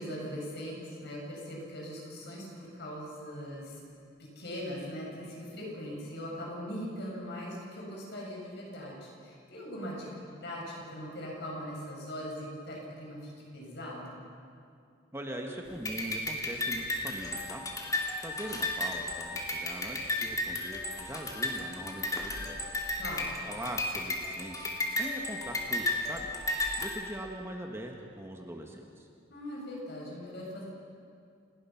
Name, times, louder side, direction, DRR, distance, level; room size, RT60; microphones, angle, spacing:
voice 1, 0.0-3.7 4.4-10.1 10.4-14.2 23.0-23.3 29.3-30.6, equal, 60° left, -3 dB, 7.1 m, -40 dB
voice 2, 15.1-17.6 18.2-22.7 23.5-26.3 26.8-29.1, right 1 dB, 15° right, 2 dB, 1.5 m, -41 dB
sound 1, 15.8-26.9, left 2 dB, 20° left, 2.7 m, -34 dB
28.5 x 19.0 x 5.9 m, 2.3 s
head